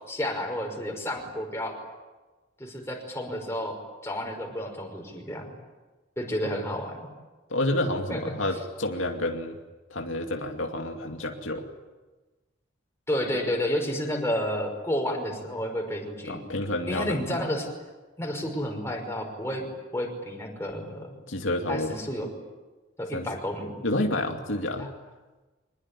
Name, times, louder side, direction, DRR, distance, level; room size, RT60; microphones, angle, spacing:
voice 1, 0.1-1.8 2.6-3.8 4.0-5.5 6.2-7.0 8.1-8.3 13.1-16.4 16.9-17.7 18.2-19.6 19.9-21.1 21.7-22.3 23.0-23.7 24.8-24.9, equal, 15° left, 2 dB, 5.6 m, -31 dB
voice 2, 7.5-9.6 9.9-11.7 16.3-17.3 21.3-22.0 23.1-23.3 23.8-24.9, left 1 dB, 80° left, 3 dB, 2.5 m, -29 dB
25.5 x 21.0 x 9.9 m, 1.2 s
head